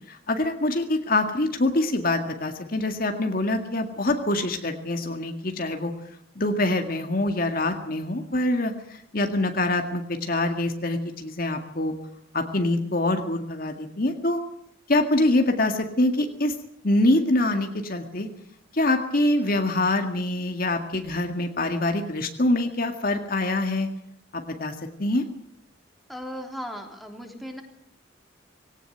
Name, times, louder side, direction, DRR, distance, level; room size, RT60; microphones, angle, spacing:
voice 1, 0.1-5.9 6.4-11.9 12.3-14.4 14.9-16.5 16.8-18.3 18.7-23.9 24.3-24.7 25.0-25.2, left 2 dB, 45° left, 5 dB, 2.0 m, -25 dB
voice 2, 26.1-27.6, equal, ahead, 2 dB, 3.4 m, -36 dB
19.5 x 18.0 x 9.1 m, 0.70 s
head